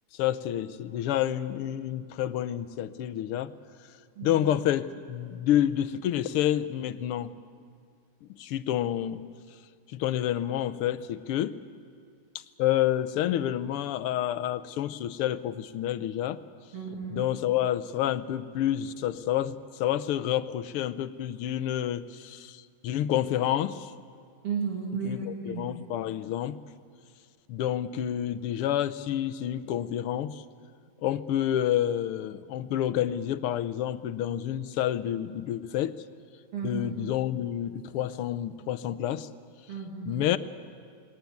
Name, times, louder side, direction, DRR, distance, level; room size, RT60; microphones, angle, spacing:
voice 1, 0.1-3.5 4.2-7.3 8.4-9.2 9.9-11.6 12.6-16.4 17.1-23.9 25.0-26.6 27.5-30.4 31.0-35.9 36.6-39.3 40.1-40.4, left 11 dB, 90° left, 12 dB, 1.7 m, -29 dB
voice 2, 16.7-17.3 24.4-25.6 36.5-36.9 39.7-40.3, right 5 dB, 85° right, 0 dB, 3.6 m, -34 dB
21.0 x 18.5 x 9.4 m, 2.2 s
omnidirectional pair, 2.4 m